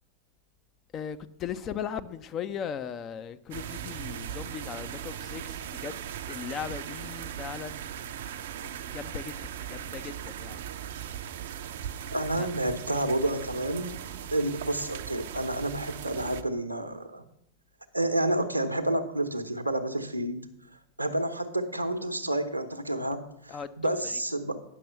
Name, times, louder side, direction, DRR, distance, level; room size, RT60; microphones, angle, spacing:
voice 1, 0.9-6.0 6.3-8.0 8.9-9.3 9.7-10.6 12.4-12.5 23.5-23.7, left 8 dB, 30° left, 0.6 m, -38 dB
sound 1, 3.5-16.4, right 9 dB, 55° right, 0.5 m, -39 dB
voice 2, 12.1-14.0 14.3-17.3 17.9-20.4 21.0-24.6, right 1 dB, 85° right, 0.8 m, -29 dB
10.0 x 6.0 x 6.5 m
figure-of-eight pair, 90°, 0 cm